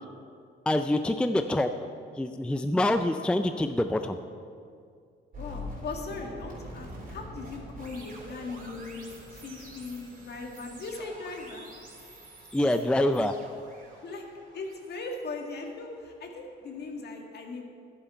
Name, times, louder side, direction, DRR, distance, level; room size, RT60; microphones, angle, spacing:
voice 1, 0.7-1.9 2.2-4.2 12.5-13.3, left 1 dB, 5° left, 8 dB, 0.4 m, -26 dB
sound 1, 5.3-16.4, equal, 45° right, 3.3 m, -45 dB
voice 2, 5.4-9.0 9.3-11.7 14.0-14.2 14.5-17.6, left 3 dB, 55° left, 2 dB, 1.8 m, -39 dB
11.0 x 10.5 x 4.5 m, 2.2 s
cardioid pair, 90°, 20 cm